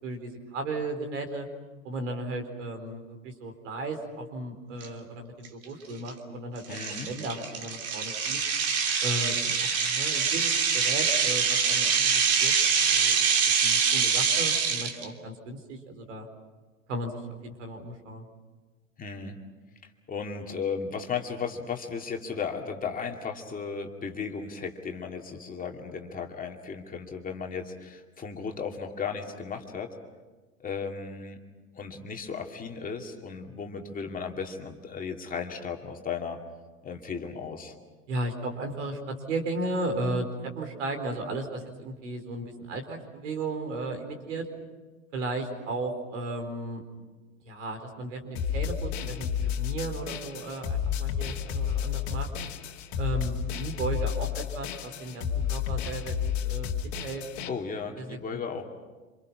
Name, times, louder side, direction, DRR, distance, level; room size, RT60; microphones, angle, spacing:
voice 1, 0.0-1.5 1.8-8.4 9.0-12.5 12.8-16.3 16.9-18.2 38.1-44.5 45.1-46.8 47.4-52.3 53.0-56.7 57.0-57.2 58.0-58.2, right 2 dB, 65° right, 4 dB, 4.4 m, -35 dB
sound 1, 4.8-4.9 5.5-5.6 6.1-6.2 6.7-15.0, right 6 dB, 35° right, 2.9 m, -25 dB
voice 2, 6.7-7.1 19.0-19.4 20.1-29.9 30.6-31.4 31.7-36.4 36.8-37.8 57.5-58.7, left 5 dB, 20° left, 2 dB, 2.5 m, -35 dB
sound 2, 48.4-57.5, left 8 dB, 55° left, 2.2 m, -31 dB
28.0 x 27.0 x 6.1 m, 1.3 s
figure-of-eight pair, 85°, 40 cm